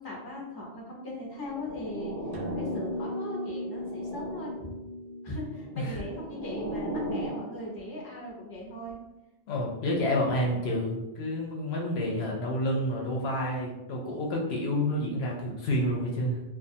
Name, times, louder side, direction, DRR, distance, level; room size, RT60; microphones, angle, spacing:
voice 1, 0.0-2.1 2.6-4.8 5.2-9.0, left 1 dB, 30° left, -3 dB, 0.4 m, -39 dB
sound 1, 1.3-3.1 3.6-4.7 5.6-7.5, right 1 dB, 25° right, 0.6 m, -37 dB
sound 2, 2.3-6.9, left 1 dB, 70° right, 0.8 m, -38 dB
voice 2, 9.5-16.4, left 1 dB, 65° left, -2 dB, 0.8 m, -29 dB
2.3 x 2.3 x 2.6 m, 0.99 s
omnidirectional pair, 1.2 m